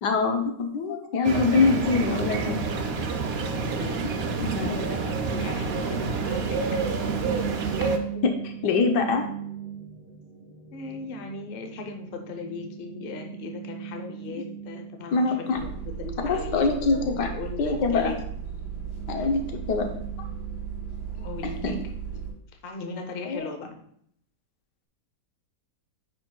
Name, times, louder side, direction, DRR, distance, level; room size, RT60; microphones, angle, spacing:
voice 1, 0.0-2.6 4.4-4.8 7.8-7.9 8.2-9.3 15.1-15.6 16.3-17.3 17.6-18.1 19.1-19.8 21.6-21.7 23.2-23.5, left 4 dB, 90° left, 4 dB, 1.5 m, -24 dB
sound 1, 1.2-8.0, right 4 dB, 65° right, 0.6 m, -28 dB
voice 2, 3.6-4.0 4.6-6.6 10.7-18.2 19.1-19.3 21.1-21.8 22.6-23.8, left 4 dB, 45° left, 4 dB, 0.8 m, -38 dB
sound 2, 4.2-22.3, right 9 dB, 15° right, 0.9 m, -40 dB
sound 3, 15.5-22.3, right 7 dB, 65° left, 2.4 m, -36 dB
9.3 x 5.0 x 2.3 m, 0.66 s
omnidirectional pair, 1.8 m